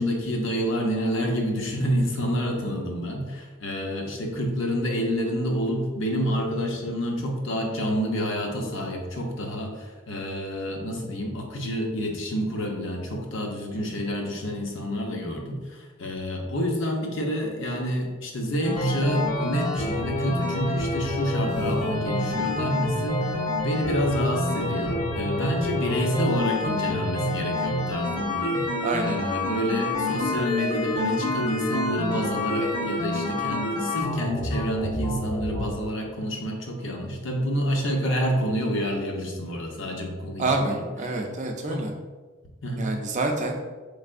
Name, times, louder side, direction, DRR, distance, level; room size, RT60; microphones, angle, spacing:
voice 1, 0.0-41.2 41.7-41.9 42.6-42.9, equal, 55° left, 2 dB, 0.6 m, -28 dB
sound 1, 18.6-35.7, left 1 dB, 80° left, 1.3 m, -28 dB
voice 2, 22.3-22.8 28.8-29.2 40.4-41.9 42.8-43.6, right 2 dB, 35° right, 3 dB, 0.4 m, -28 dB
4.3 x 3.3 x 2.5 m, 1.3 s
head